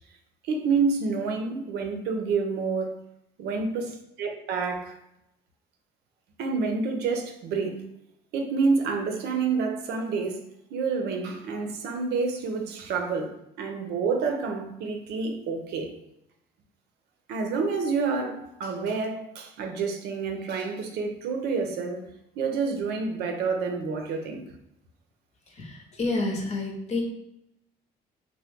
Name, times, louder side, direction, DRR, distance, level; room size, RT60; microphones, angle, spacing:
voice 1, 0.4-2.9 3.4-5.0 6.4-7.9 8.3-10.4 10.7-15.9 17.3-22.1 22.4-24.4, right 4 dB, 80° right, 4 dB, 0.6 m, -28 dB
voice 2, 25.5-27.0, left 2 dB, 40° left, 1 dB, 0.8 m, -29 dB
2.9 x 2.1 x 3.4 m, 0.82 s
cardioid pair, 110°, 17 cm